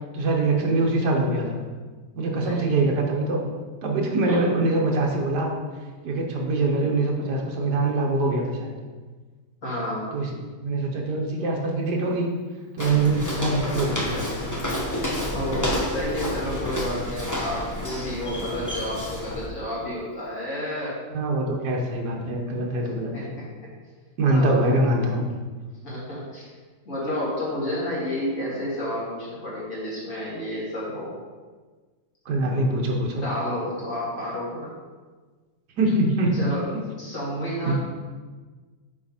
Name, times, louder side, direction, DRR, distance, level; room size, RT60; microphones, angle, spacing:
voice 1, 0.1-1.6 2.2-3.4 3.8-5.5 6.0-8.7 10.1-10.3 10.6-12.3 12.7-14.2 21.1-23.3 24.2-25.3 32.3-33.3 35.8-36.3 36.7-36.8 37.6-37.7, right 2 dB, 65° right, 0 dB, 1.6 m, -23 dB
voice 2, 2.3-2.8 4.3-4.4 9.6-10.1 15.3-21.0 23.1-23.2 24.3-24.6 25.8-26.5 26.9-31.1 33.2-34.7 36.3-36.6 37.0-37.7, left 1 dB, 45° left, -7 dB, 2.8 m, -30 dB
Walk footsteps, 12.8-19.5, left 1 dB, 15° left, 0.6 m, -29 dB
7.4 x 4.3 x 4.3 m, 1.4 s
omnidirectional pair, 1.9 m